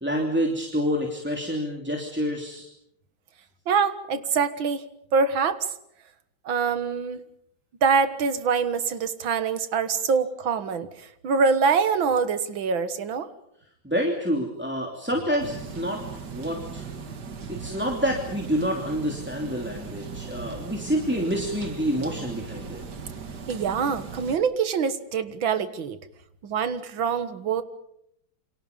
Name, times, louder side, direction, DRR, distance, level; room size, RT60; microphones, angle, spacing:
voice 1, 0.0-2.7 13.8-16.9 17.5-22.8, equal, 5° right, 1 dB, 2.9 m, -28 dB
voice 2, 3.7-4.8 5.1-5.7 6.5-7.2 7.8-13.3 23.5-26.0 26.4-27.6, right 5 dB, 80° right, 11 dB, 2.2 m, -24 dB
sound 1, 15.4-24.4, right 5 dB, 55° right, 2.5 m, -38 dB
29.0 x 26.0 x 5.4 m, 0.75 s
omnidirectional pair, 2.1 m